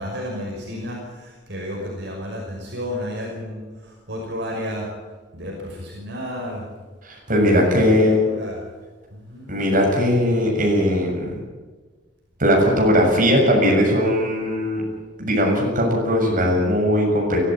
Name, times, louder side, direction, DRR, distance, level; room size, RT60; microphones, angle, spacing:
voice 1, 0.0-4.9 5.3-6.7 7.6-8.6 9.1-9.5, equal, 65° right, -1 dB, 5.8 m, -32 dB
voice 2, 7.0-8.2 9.5-11.3 12.4-14.8 15.2-17.4, equal, 45° right, 0 dB, 7.2 m, -19 dB
23.5 x 14.5 x 9.0 m, 1.3 s
head